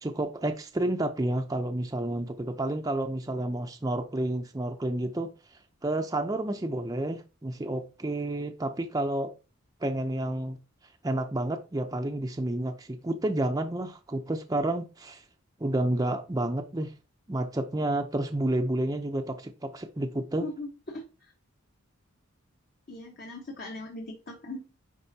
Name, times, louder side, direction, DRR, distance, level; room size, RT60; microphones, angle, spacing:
voice 1, 0.0-5.3 5.8-9.3 9.8-10.6 11.0-15.2 15.6-16.9 17.3-20.5, right 1 dB, 15° right, 0.6 m, -30 dB
voice 2, 20.4-21.0 22.9-24.7, left 2 dB, 45° left, 1.3 m, -39 dB
10.0 x 4.3 x 2.8 m
head